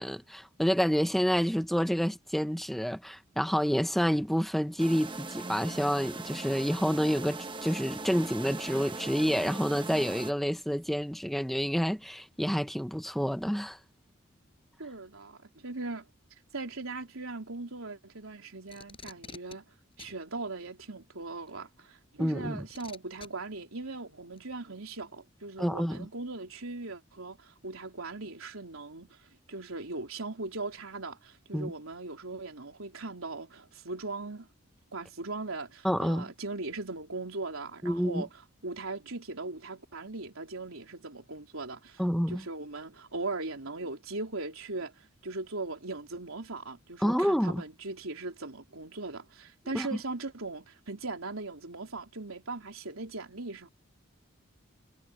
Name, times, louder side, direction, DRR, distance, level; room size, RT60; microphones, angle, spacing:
voice 1, 0.0-13.8 22.2-22.6 25.6-26.0 31.5-31.7 35.8-36.3 37.8-38.2 42.0-42.4 47.0-47.6 49.7-49.9, equal, ahead, 0.9 m, -28 dB
sound 1, 4.8-10.3, right 3 dB, 25° right, 0.9 m, -40 dB
voice 2, 14.8-16.0 16.5-19.6 20.0-29.2 29.5-34.5 34.9-38.3 38.6-42.0 42.3-53.7, right 3 dB, 85° right, 3.7 m, -39 dB
Packing tape duct tape, 18.7-19.6 20.0-20.2 21.5-21.6 22.7-23.3 24.4-24.5, left 4 dB, 25° left, 7.4 m, -47 dB
head